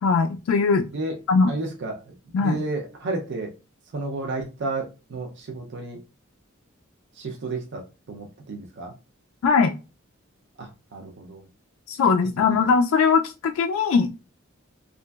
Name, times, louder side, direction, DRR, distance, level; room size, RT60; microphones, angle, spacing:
voice 1, 0.0-0.8 1.3-1.5 2.3-2.6 9.4-9.7 11.9-14.2, left 5 dB, 85° left, 5 dB, 0.3 m, -20 dB
voice 2, 1.5-3.5 3.9-6.0 7.1-7.8 8.1-8.9 10.6-11.5 12.4-12.7, right 2 dB, 60° right, 1 dB, 0.5 m, -32 dB
2.8 x 2.5 x 2.2 m, 0.30 s
head